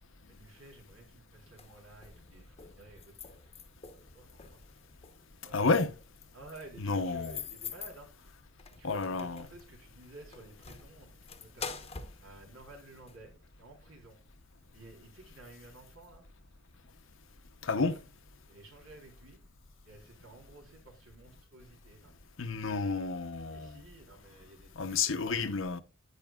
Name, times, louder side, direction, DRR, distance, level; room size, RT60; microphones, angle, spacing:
voice 1, 0.3-3.5 3.9-4.6 5.4-5.8 6.3-8.3 8.7-14.2 14.7-16.3 17.6-18.1 18.5-19.4 19.8-22.9 23.5-25.4, right 2 dB, 85° right, 3.8 m, -54 dB
sound 1, 1.6-13.2, left 6 dB, 30° left, 0.9 m, -47 dB
voice 2, 5.5-5.9 6.8-7.4 8.8-9.4 17.6-18.0 22.4-23.7 24.8-25.8, left 4 dB, 65° left, 0.8 m, -30 dB
10.5 x 8.3 x 2.4 m
head